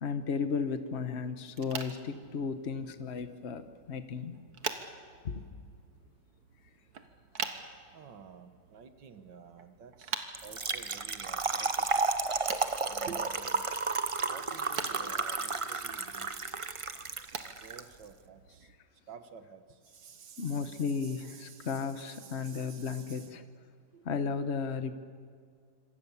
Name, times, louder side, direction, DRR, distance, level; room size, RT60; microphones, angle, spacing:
voice 1, 0.0-4.4 5.2-5.4 20.4-23.4 24.0-24.9, left 5 dB, 40° left, 9 dB, 1.3 m, -34 dB
sound 1, 1.5-18.8, right 6 dB, 60° right, 1.9 m, -45 dB
voice 2, 7.9-11.9 12.9-13.7 14.2-16.3 17.6-18.7 19.1-23.3 23.9-24.1, right 6 dB, 80° right, 9 dB, 2.0 m, -51 dB
Trickle dribble / Fill (with liquid), 10.3-17.8, right 4 dB, 45° right, 0.4 m, -32 dB
26.5 x 25.0 x 7.2 m, 2.1 s
omnidirectional pair, 1.9 m